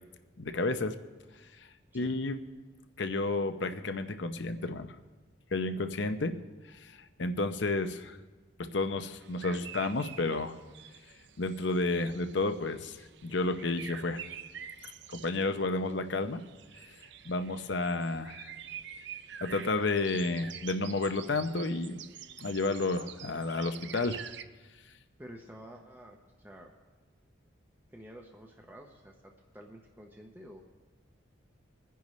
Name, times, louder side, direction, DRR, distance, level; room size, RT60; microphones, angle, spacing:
voice 1, 0.4-1.0 1.6-1.7 1.9-2.4 3.0-4.9 5.5-6.3 6.7-8.2 8.6-10.6 11.4-13.0 13.2-14.2 15.1-16.4 17.2-18.5 19.4-22.0 22.4-24.2, left 2 dB, 65° left, 9 dB, 0.8 m, -31 dB
sound 1, 9.2-24.4, right 9 dB, 60° right, 0.5 m, -47 dB
voice 2, 25.2-26.7 27.9-30.6, equal, 10° right, 1 dB, 0.8 m, -50 dB
25.5 x 10.5 x 3.2 m, 1.3 s
head